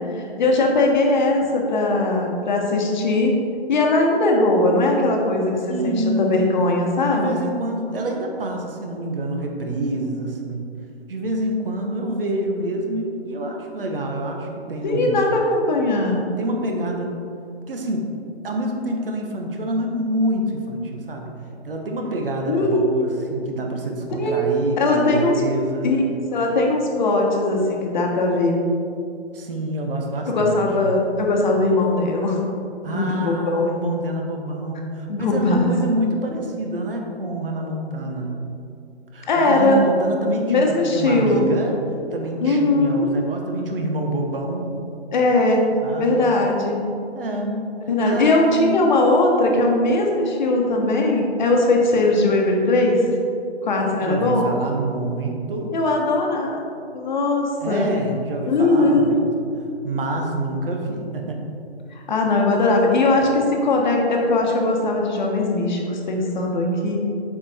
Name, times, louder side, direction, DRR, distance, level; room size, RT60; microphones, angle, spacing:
voice 1, 0.1-3.3 3.7-7.4 14.8-16.2 22.5-23.1 24.1-24.5 24.8-25.3 25.8-26.0 26.3-28.6 30.3-32.4 32.9-33.7 35.1-35.7 39.3-39.8 40.5-41.5 42.4-43.1 45.1-45.6 46.0-46.8 47.9-53.0 53.6-54.4 55.7-56.6 56.9-57.9 58.5-59.2 61.9-67.1, left 2 dB, 45° left, 0 dB, 1.2 m, -20 dB
voice 2, 5.7-6.4 7.1-10.7 11.1-15.2 16.4-17.2 17.7-18.1 18.4-21.3 21.6-25.9 29.3-30.7 32.8-38.3 39.1-41.8 42.1-44.7 45.8-46.2 47.1-47.6 48.0-48.8 54.0-55.7 57.6-59.4 59.8-61.4, right 1 dB, 55° right, 2 dB, 1.2 m, -27 dB
7.1 x 5.0 x 4.3 m, 2.5 s
hypercardioid pair, 150°, 33 cm